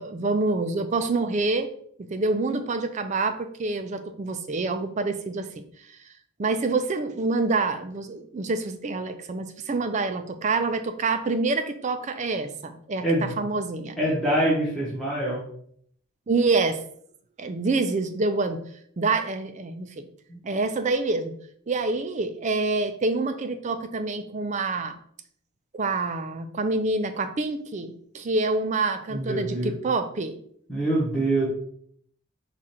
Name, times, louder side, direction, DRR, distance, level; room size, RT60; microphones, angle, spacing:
voice 1, 0.0-1.7 2.0-5.5 6.4-13.9 16.3-16.8 17.4-18.6 19.0-20.0 20.4-21.3 21.7-24.9 25.7-30.3, right 3 dB, 35° right, 8 dB, 0.4 m, -26 dB
voice 2, 13.0-13.3 14.0-15.4 20.3-20.4 29.1-29.7 30.7-31.5, right 1 dB, 5° left, -8 dB, 1.0 m, -25 dB
4.8 x 2.4 x 4.3 m, 0.63 s
head